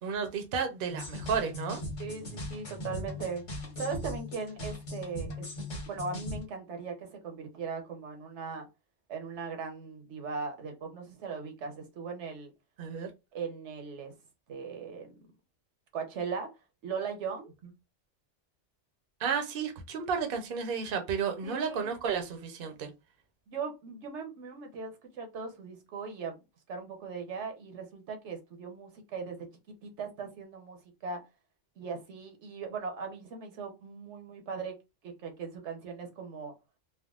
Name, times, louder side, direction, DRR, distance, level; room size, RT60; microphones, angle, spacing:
voice 1, 0.0-1.8 12.8-13.1 19.2-22.9, right 6 dB, 55° right, 0.8 m, -32 dB
sound 1, 0.9-6.4, left 1 dB, 90° left, 1.5 m, -39 dB
voice 2, 2.0-3.4 3.8-5.5 5.9-8.7 9.1-12.5 13.3-14.1 14.5-15.1 15.9-16.5 16.8-17.5 21.4-21.9 23.5-26.4 26.7-29.5 29.8-31.2 31.8-34.8 35.0-36.5, right 5 dB, 75° right, 1.0 m, -39 dB
3.5 x 2.2 x 2.3 m
omnidirectional pair, 1.2 m